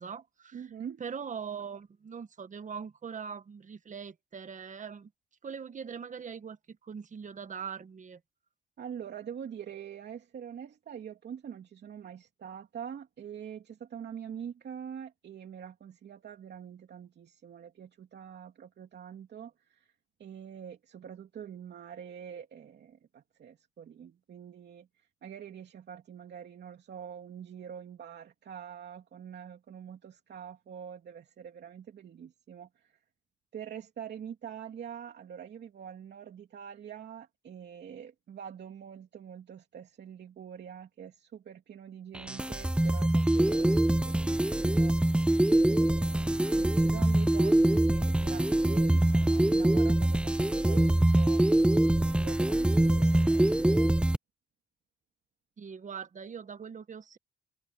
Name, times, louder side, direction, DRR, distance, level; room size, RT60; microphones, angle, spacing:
voice 1, 0.0-0.7 1.0-5.1 5.4-8.2 55.6-57.2, right 6 dB, 40° right, 1.5 m, -41 dB
voice 2, 0.5-1.0 8.8-19.9 20.2-33.0 33.5-51.7 51.9-54.0, right 8 dB, 60° right, 2.9 m, -45 dB
sound 1, 42.2-54.2, right 1 dB, 5° right, 0.5 m, -24 dB
cardioid pair, 90°, 20 cm